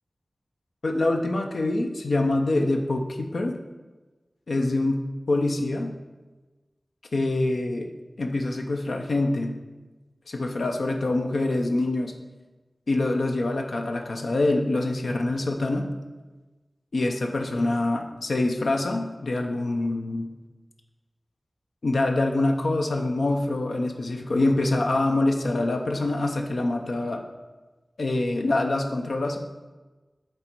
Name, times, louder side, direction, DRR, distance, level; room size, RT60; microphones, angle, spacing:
voice 1, 0.8-3.6 4.5-5.9 7.1-7.9 8.2-9.5 10.3-12.1 12.9-15.9 16.9-20.3 21.8-27.2 28.0-29.4, left 2 dB, 85° left, 2 dB, 0.6 m, -25 dB
7.7 x 4.0 x 4.5 m, 1.2 s
wide cardioid pair, 65°, 0 cm